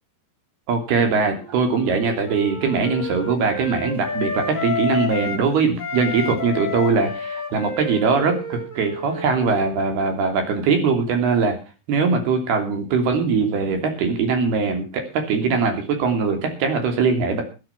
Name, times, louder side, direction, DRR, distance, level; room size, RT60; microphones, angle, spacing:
voice 1, 0.7-11.6 11.9-17.4, right 5 dB, 85° right, 5 dB, 5.0 m, -21 dB
Wind instrument woodwind instrument, 1.1-5.5 5.8-10.3, left 3 dB, 10° left, 5.2 m, -31 dB
14.5 x 10.5 x 5.9 m, 0.33 s
omnidirectional pair, 4.4 m